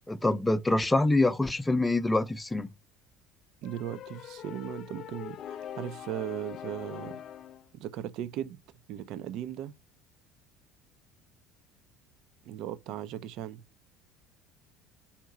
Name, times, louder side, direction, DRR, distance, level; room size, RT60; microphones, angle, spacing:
voice 1, 0.1-2.7, left 2 dB, 10° left, 0.7 m, -25 dB
sound 1, 3.6-7.7, left 9 dB, 45° left, 0.4 m, -42 dB
voice 2, 3.6-7.2 7.7-8.6 8.9-9.7 12.4-13.6, right 11 dB, 55° right, 0.5 m, -37 dB
5.8 x 4.5 x 4.5 m
figure-of-eight pair, 65°, 0 cm